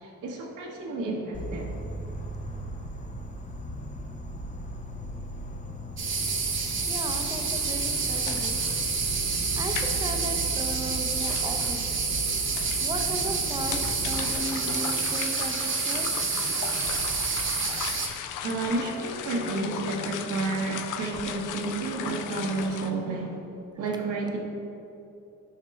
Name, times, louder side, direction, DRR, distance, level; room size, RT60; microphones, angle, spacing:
voice 1, 0.0-1.7 18.4-23.4 23.8-24.4, right 3 dB, 75° right, -1 dB, 1.0 m, -31 dB
Insect, 1.3-14.3, right 1 dB, 25° left, 0.6 m, -37 dB
sound 1, 6.0-18.1, right 4 dB, 40° right, 0.9 m, -28 dB
voice 2, 6.9-8.6 9.6-11.9 12.8-16.1, right 1 dB, 15° right, 4 dB, 0.6 m, -36 dB
sound 2, 7.5-22.9, left 9 dB, 85° left, 0.5 m, -38 dB
6.6 x 5.7 x 3.4 m, 2.6 s
cardioid pair, 90°, 30 cm